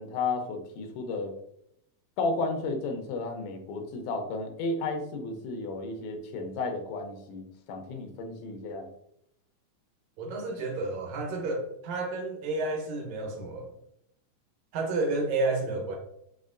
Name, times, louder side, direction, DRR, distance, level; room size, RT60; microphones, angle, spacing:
voice 1, 0.0-1.3 2.2-8.9, left 3 dB, 85° left, 5 dB, 2.3 m, -33 dB
voice 2, 10.2-13.7 14.7-16.0, right 2 dB, 70° right, 1 dB, 2.1 m, -31 dB
5.4 x 3.9 x 2.5 m, 0.76 s
omnidirectional pair, 3.5 m